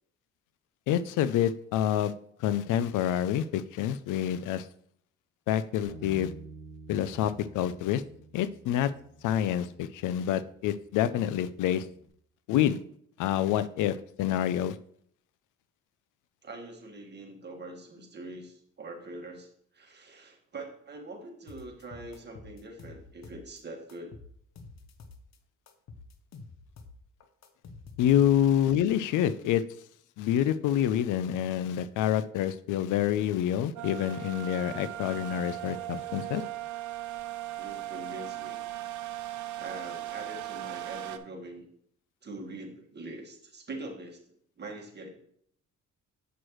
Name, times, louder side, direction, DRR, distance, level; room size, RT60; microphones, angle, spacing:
voice 1, 0.9-2.1 2.4-4.7 5.5-6.3 6.9-8.0 8.3-8.9 9.2-11.9 12.5-12.8 13.2-14.8 28.0-29.6 30.2-36.4, left 10 dB, 85° left, 15 dB, 0.5 m, -27 dB
Bass guitar, 5.8-12.1, right 3 dB, 40° left, 3.3 m, -50 dB
voice 2, 16.4-19.5 19.7-24.1 28.3-28.4 37.6-38.6 39.6-41.7 42.2-44.2 44.6-45.1, right 2 dB, 35° right, 2 dB, 1.8 m, -43 dB
sound 1, 21.5-23.6 23.9-25.4 25.7-28.6, left 3 dB, 60° left, 0.9 m, -49 dB
sound 2, 33.8-41.2, right 15 dB, 70° right, 0.7 m, -38 dB
8.1 x 6.3 x 3.1 m, 0.65 s
cardioid pair, 90°, 30 cm